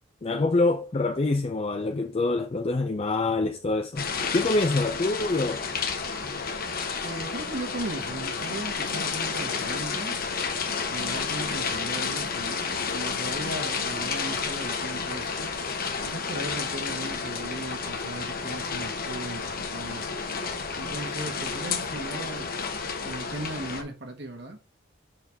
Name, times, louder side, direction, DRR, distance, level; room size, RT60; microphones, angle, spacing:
voice 1, 0.2-4.1 4.3-5.6, left 2 dB, 30° left, 0.4 m, -25 dB
sound 1, 4.0-23.8, left 5 dB, 50° left, 0.9 m, -31 dB
voice 2, 7.0-10.2 10.9-15.5 16.0-20.1 20.7-22.5 23.0-24.6, right 1 dB, 60° right, 1.5 m, -37 dB
6.1 x 4.6 x 3.4 m
head